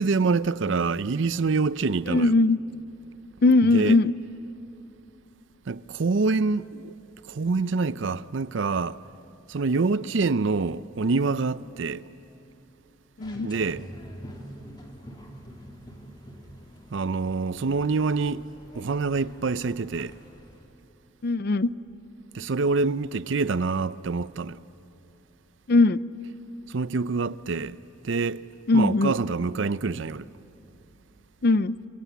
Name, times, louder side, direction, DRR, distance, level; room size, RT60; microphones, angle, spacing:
voice 1, 0.0-2.3 3.7-4.0 5.7-6.9 7.3-9.0 9.5-12.0 13.4-13.9 16.9-18.4 18.7-20.2 22.3-24.6 26.7-27.8 28.0-28.5 28.7-30.3, right 4 dB, 60° right, 0.5 m, -26 dB
voice 2, 2.1-2.6 3.4-4.1 13.2-13.5 21.2-21.7 25.7-26.0 28.7-29.1 31.4-31.8, left 2 dB, 50° left, 0.5 m, -20 dB
sound 1, 13.2-20.6, equal, 20° left, 2.2 m, -46 dB
29.5 x 22.5 x 8.3 m
head